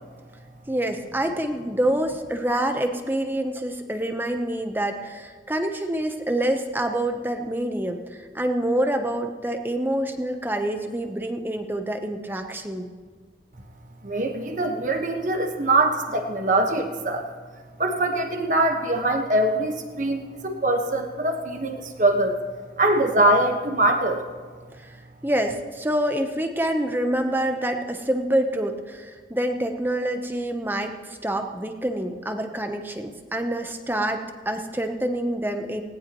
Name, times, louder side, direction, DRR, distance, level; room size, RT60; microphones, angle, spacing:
voice 1, 0.7-12.9 24.8-24.9 25.2-35.8, right 1 dB, 10° right, 5 dB, 0.9 m, -26 dB
voice 2, 14.0-17.3 17.8-22.4 22.8-24.2, right 2 dB, 45° right, 4 dB, 1.4 m, -23 dB
19.5 x 18.0 x 3.1 m, 1.5 s
head